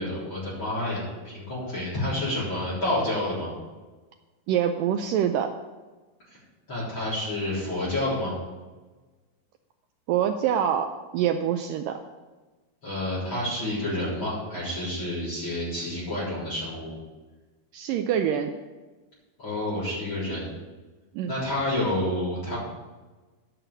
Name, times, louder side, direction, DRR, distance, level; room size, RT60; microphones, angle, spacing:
voice 1, 0.0-3.5 6.3-6.4 6.7-8.3 12.8-16.9 19.4-20.6 21.3-22.6, left 1 dB, 30° left, -8 dB, 4.4 m, -29 dB
voice 2, 4.5-5.5 10.1-12.0 17.7-18.5 21.2-21.3, right 9 dB, 85° right, 6 dB, 1.9 m, -25 dB
11.0 x 5.8 x 8.1 m, 1.3 s
omnidirectional pair, 4.5 m